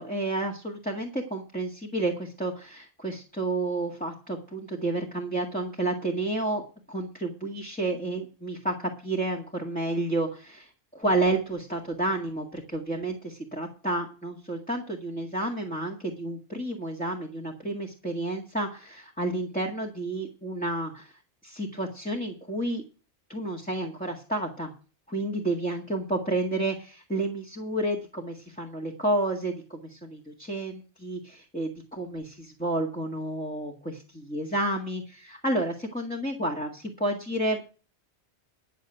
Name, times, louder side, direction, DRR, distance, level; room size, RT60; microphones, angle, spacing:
voice 1, 0.0-21.1 21.4-22.8 23.3-24.7 25.1-37.6, right 2 dB, 5° left, -1 dB, 1.8 m, -30 dB
11.5 x 6.6 x 7.8 m, 0.36 s
omnidirectional pair, 1.1 m